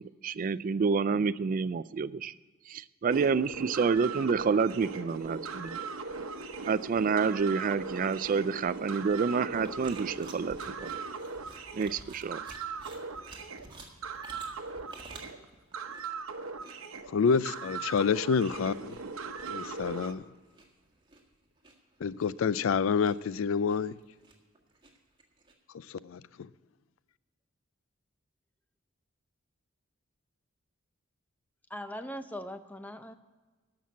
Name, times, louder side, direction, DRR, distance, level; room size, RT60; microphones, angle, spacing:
voice 1, 0.0-2.3 2.7-5.8 6.7-11.0 11.7-12.4, right 5 dB, 40° right, 0.3 m, -28 dB
sound 1, 3.1-20.1, right 4 dB, 80° right, 0.9 m, -39 dB
sound 2, 8.7-25.5, right 3 dB, 20° right, 1.7 m, -52 dB
voice 2, 17.1-19.0 19.5-20.2 22.0-23.9 25.7-26.5, left 6 dB, 70° left, 0.4 m, -28 dB
voice 3, 31.7-33.1, equal, 10° left, 0.6 m, -40 dB
14.0 x 6.0 x 8.2 m
head